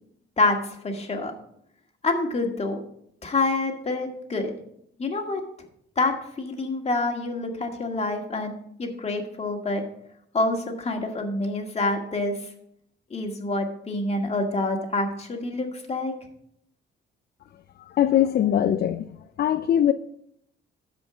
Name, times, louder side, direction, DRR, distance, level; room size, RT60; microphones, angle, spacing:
voice 1, 0.4-1.3 2.0-2.8 3.2-4.6 5.0-5.4 6.0-8.5 8.8-9.8 10.3-12.3 13.1-16.1, left 2 dB, 30° left, 2.0 m, -27 dB
voice 2, 18.0-19.0 19.4-19.9, left 10 dB, 55° left, 0.5 m, -21 dB
13.0 x 5.2 x 5.0 m
cardioid pair, 90°, 20 cm